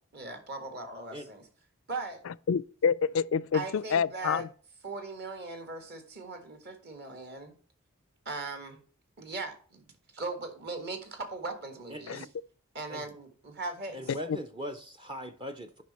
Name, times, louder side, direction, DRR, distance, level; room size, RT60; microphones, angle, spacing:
voice 1, 0.1-1.4 1.9-2.2 3.5-4.4 4.8-7.5 8.2-8.8 9.2-9.8 10.1-12.3 12.7-14.0, right 3 dB, 50° right, 1.7 m, -39 dB
voice 2, 2.3-4.5 12.1-12.3 14.1-14.4, left 6 dB, 65° left, 0.4 m, -28 dB
voice 3, 11.9-12.3 12.9-13.1 13.9-15.8, equal, 20° right, 0.5 m, -40 dB
9.2 x 5.4 x 4.2 m
head